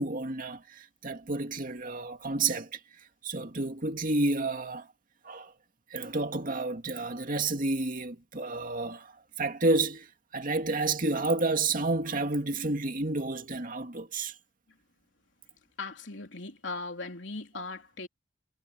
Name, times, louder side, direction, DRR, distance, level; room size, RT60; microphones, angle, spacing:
voice 1, 0.0-2.8 3.2-4.9 5.2-5.5 5.9-14.4 17.5-17.6, right 2 dB, 50° right, 2.3 m, -30 dB
voice 2, 15.8-18.1, left 3 dB, 75° left, 3.7 m, -38 dB
head